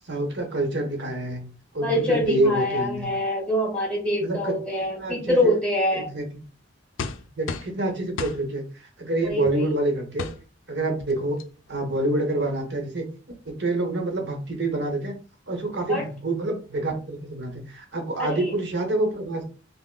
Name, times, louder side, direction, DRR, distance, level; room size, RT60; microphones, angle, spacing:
voice 1, 0.0-1.5 1.7-3.1 4.2-4.5 5.0-5.6 5.9-6.4 7.4-10.3 10.7-11.4 11.7-13.0 13.5-15.2 15.5-19.4, right 2 dB, 60° right, 2 dB, 1.0 m, -27 dB
voice 2, 1.8-6.1 9.2-9.7 15.9-16.0 18.2-18.5, left 1 dB, 5° left, -3 dB, 1.5 m, -25 dB
sound 1, 7.0-7.8 8.2-8.4 9.5-9.6 10.2-10.4 11.1-11.2 11.4-11.7, left 5 dB, 85° left, 0.4 m, -32 dB
5.4 x 2.0 x 2.2 m, 0.36 s
head